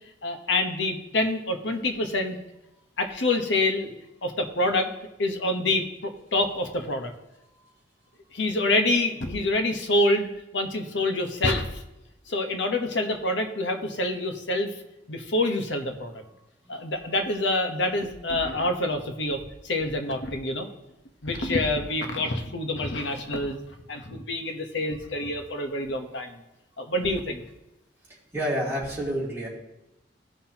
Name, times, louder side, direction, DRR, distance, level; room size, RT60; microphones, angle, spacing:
voice 1, 0.2-2.4 3.0-3.9 4.2-4.9 5.2-7.1 8.3-10.3 10.5-11.8 12.3-14.7 15.1-16.1 16.7-19.4 19.6-20.7 21.2-23.6 23.9-26.4 26.8-27.4, left 2 dB, 80° left, 5 dB, 1.1 m, -26 dB
voice 2, 28.3-29.5, equal, 15° right, -7 dB, 3.0 m, -28 dB
16.5 x 5.7 x 2.9 m, 0.94 s
head